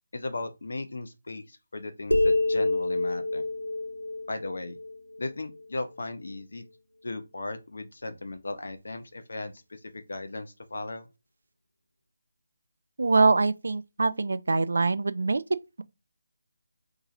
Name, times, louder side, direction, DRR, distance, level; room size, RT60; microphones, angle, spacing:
voice 1, 0.1-3.5 4.3-4.8 5.2-6.6 7.0-11.1, left 2 dB, 55° left, 0.7 m, -37 dB
sound 1, 2.1-5.6, left 2 dB, 90° left, 0.5 m, -27 dB
voice 2, 13.0-15.8, right 3 dB, 55° right, 0.3 m, -24 dB
2.8 x 2.8 x 3.7 m
figure-of-eight pair, 155°, 0 cm